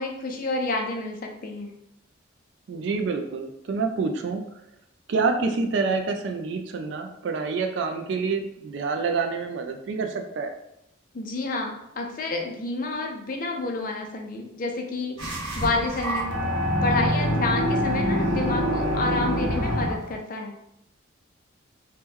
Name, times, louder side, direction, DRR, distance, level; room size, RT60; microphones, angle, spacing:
voice 1, 0.0-1.7 11.1-16.3 16.8-20.6, left 3 dB, 40° left, 3 dB, 0.4 m, -29 dB
voice 2, 2.7-4.4 5.1-10.5, right 4 dB, 60° right, 5 dB, 0.3 m, -27 dB
sound 1, 15.2-20.1, equal, 85° right, 0.8 m, -25 dB
2.9 x 2.2 x 3.5 m, 0.79 s
head